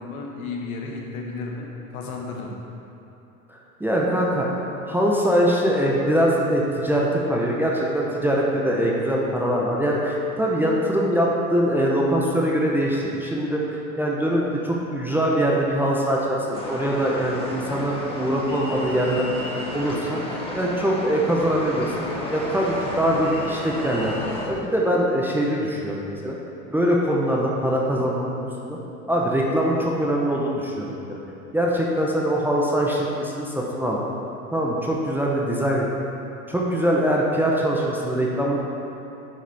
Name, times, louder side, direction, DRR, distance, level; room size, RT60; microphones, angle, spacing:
voice 1, 0.0-2.6, left 3 dB, 70° left, 0 dB, 1.4 m, -33 dB
voice 2, 3.5-19.3 19.7-21.9 22.3-24.1 24.5-26.4 26.7-28.8 29.1-31.2 31.5-34.0 34.5-35.9 36.5-38.6, equal, 5° right, -4 dB, 0.7 m, -23 dB
sound 1, 16.5-24.5, left 1 dB, 10° left, 1.3 m, -32 dB
9.3 x 4.9 x 3.4 m, 3.0 s
hypercardioid pair, 100°, 44 cm